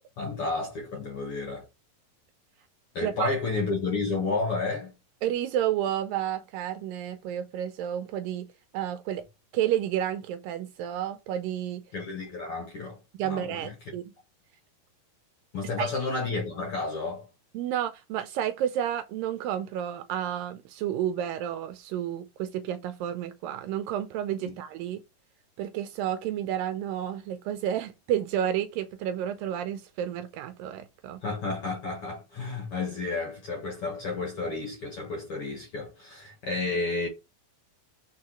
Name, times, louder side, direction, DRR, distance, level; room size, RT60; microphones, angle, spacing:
voice 1, 0.2-1.6 2.9-4.9 11.9-13.0 13.2-13.7 15.5-17.3 31.2-37.1, left 3 dB, 50° left, 1.8 m, -31 dB
voice 2, 5.2-8.5 8.7-9.2 9.5-11.8 13.1-14.1 15.8-15.9 17.5-25.0 25.6-31.2, right 10 dB, 80° right, 2.1 m, -31 dB
4.7 x 4.6 x 4.4 m
omnidirectional pair, 4.3 m